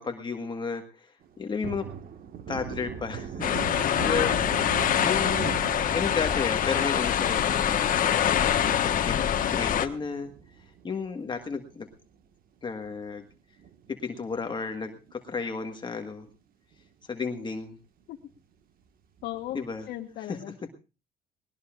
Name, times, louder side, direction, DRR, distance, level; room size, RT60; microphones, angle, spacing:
voice 1, 0.0-1.9 2.5-4.3 5.0-5.6 5.9-8.4 8.8-11.9 12.6-13.2 13.9-16.3 17.1-17.8 19.5-19.9 20.2-20.5, left 5 dB, 25° left, 4 dB, 1.6 m, -33 dB
Thunder, 1.2-11.9 12.3-12.4 12.8-14.3 14.6-14.7 15.1-15.9 16.3-16.4 16.7-16.8 19.2-19.7, right 8 dB, 60° right, 1.7 m, -41 dB
sound 1, 3.4-9.9, left 9 dB, 55° left, 1.4 m, -25 dB
voice 2, 4.0-5.0 18.1-18.2 19.2-19.6 19.9-20.5, left 13 dB, 75° left, 3 dB, 1.4 m, -35 dB
20.0 x 19.5 x 2.5 m, 0.32 s
cardioid pair, 110°, 17 cm